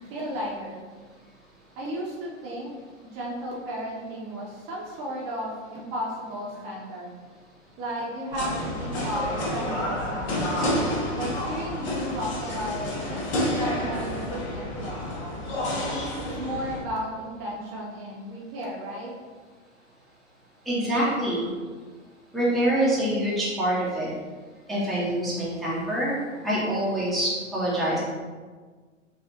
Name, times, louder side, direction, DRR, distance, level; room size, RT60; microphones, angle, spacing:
voice 1, 0.1-0.8 1.8-2.7 3.0-7.2 7.8-10.6 11.1-15.5 16.2-19.1, equal, 35° right, -3 dB, 0.8 m, -34 dB
sound 1, 8.3-16.8, left 1 dB, 55° left, 1.4 m, -29 dB
voice 2, 20.6-21.5 22.3-24.1 24.7-26.1 26.4-28.0, right 1 dB, ahead, -8 dB, 0.8 m, -25 dB
4.8 x 2.5 x 2.9 m, 1.4 s
figure-of-eight pair, 105°, 39 cm